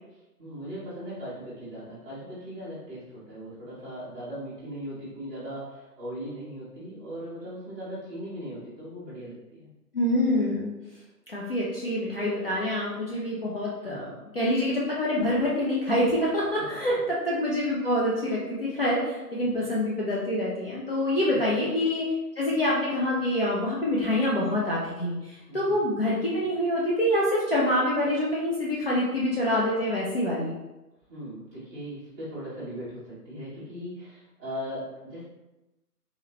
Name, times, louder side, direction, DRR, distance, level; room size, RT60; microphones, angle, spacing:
voice 1, 0.4-9.7 13.8-14.2 16.7-17.0 19.4-19.7 21.3-21.6 25.5-25.8 31.1-35.2, equal, 10° right, -13 dB, 1.1 m, -39 dB
voice 2, 9.9-10.7 11.3-14.1 14.3-22.0 22.4-30.6, left 1 dB, 35° left, -6 dB, 0.6 m, -26 dB
3.9 x 3.0 x 2.9 m, 1.0 s
figure-of-eight pair, 145°, 48 cm